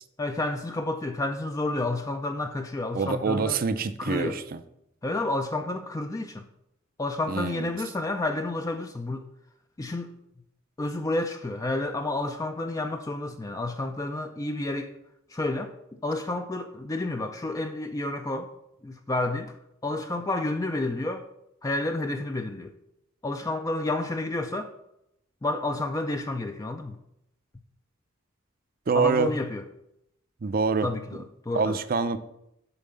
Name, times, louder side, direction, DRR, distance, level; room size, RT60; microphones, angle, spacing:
voice 1, 0.2-3.6 4.0-4.4 5.0-6.5 7.0-9.2 9.8-10.1 10.8-14.9 15.3-15.7 16.0-18.5 18.8-19.5 19.8-21.2 21.6-22.7 23.2-24.7 25.4-27.0 29.0-29.6 30.8-31.8, left 2 dB, 15° left, 0.4 m, -30 dB
voice 2, 2.9-4.6 7.3-7.7 28.9-29.3 30.4-30.9 31.5-32.2, right 4 dB, 45° right, 0.5 m, -26 dB
7.0 x 4.2 x 6.6 m
head